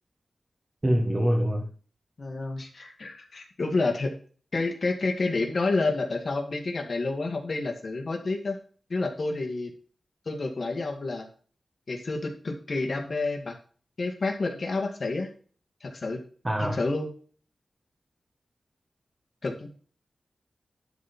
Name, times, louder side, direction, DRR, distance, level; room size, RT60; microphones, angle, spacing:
voice 1, 0.8-1.7 16.4-16.8, equal, 25° right, 1.5 m, -24 dB
voice 2, 2.2-4.1 4.5-8.6 8.9-9.7 10.3-11.3 11.9-13.6 14.0-15.3 15.8-16.2 16.6-17.1 19.4-19.7, left 3 dB, 55° left, 2.0 m, -29 dB
12.0 x 4.3 x 4.4 m
wide cardioid pair, 105°, 0 cm